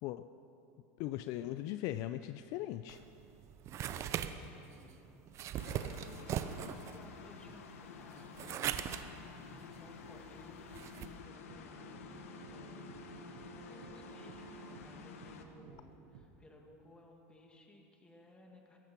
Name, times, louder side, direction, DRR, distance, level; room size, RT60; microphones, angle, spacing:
voice 1, 1.0-3.0, left 14 dB, 55° left, 11 dB, 0.4 m, -39 dB
sound 1, 2.9-11.1, right 10 dB, 40° right, 0.7 m, -41 dB
voice 2, 3.9-5.1 5.6-13.1 13.7-18.8, left 2 dB, 15° left, 1 dB, 2.1 m, -59 dB
sound 2, 5.5-15.4, left 6 dB, 85° left, 1.1 m, -51 dB
sound 3, 10.8-16.3, right 7 dB, 80° right, 1.4 m, -55 dB
17.0 x 14.0 x 4.4 m, 2.9 s
supercardioid pair, 110°, 7 cm